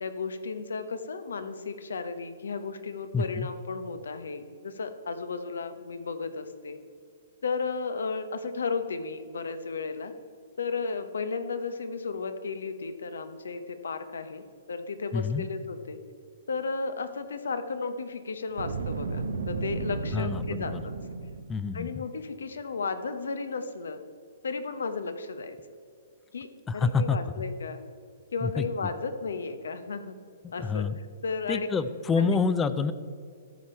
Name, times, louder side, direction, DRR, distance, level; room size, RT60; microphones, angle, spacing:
voice 1, 0.0-6.8 7.4-10.1 10.6-16.0 16.5-20.9 21.7-24.0 24.4-25.6 26.3-26.5 26.7-27.8 28.3-30.2 30.5-30.9 31.2-31.7 32.2-32.4, left 4 dB, 85° left, 10 dB, 1.0 m, -34 dB
voice 2, 3.1-3.5 15.1-15.5 20.1-20.8 21.5-22.0 26.7-27.2 28.4-28.6 30.4-31.0 31.5-32.9, left 4 dB, 15° left, 13 dB, 0.5 m, -27 dB
Boom, 18.5-21.6, right 4 dB, 85° right, 0.8 m, -33 dB
12.5 x 7.0 x 4.4 m, 2.2 s
hypercardioid pair, 140°, 0 cm